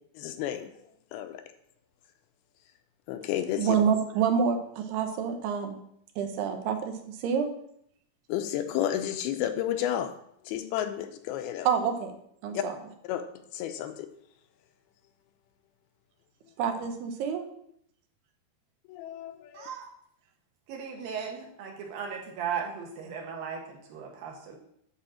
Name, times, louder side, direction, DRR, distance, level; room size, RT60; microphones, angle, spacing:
voice 1, 0.2-1.4 3.1-3.8 8.3-10.2 10.5-11.7 12.5-12.6 13.0-13.2 13.5-14.1 18.9-19.7, left 11 dB, 80° left, 7 dB, 2.5 m, -32 dB
voice 2, 3.6-5.8 6.2-7.5 11.7-12.1 12.4-12.7 16.6-17.4, right 7 dB, 85° right, 5 dB, 3.0 m, -27 dB
voice 3, 19.5-19.9 20.7-24.6, right 7 dB, 70° right, 1 dB, 3.0 m, -37 dB
10.0 x 4.3 x 6.3 m, 0.71 s
omnidirectional pair, 4.6 m